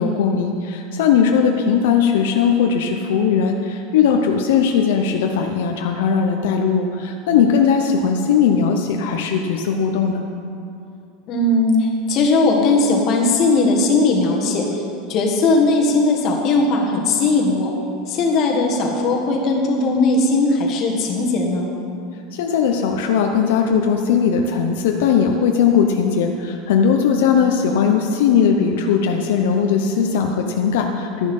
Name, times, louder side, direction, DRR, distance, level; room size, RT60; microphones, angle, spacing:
voice 1, 0.0-10.3 22.3-31.3, left 6 dB, 70° left, 3 dB, 0.8 m, -18 dB
voice 2, 11.3-14.8 15.1-17.7 18.1-21.7, left 2 dB, 35° left, 0 dB, 1.7 m, -18 dB
12.0 x 10.5 x 5.4 m, 2.6 s
supercardioid pair, 170°, 0 cm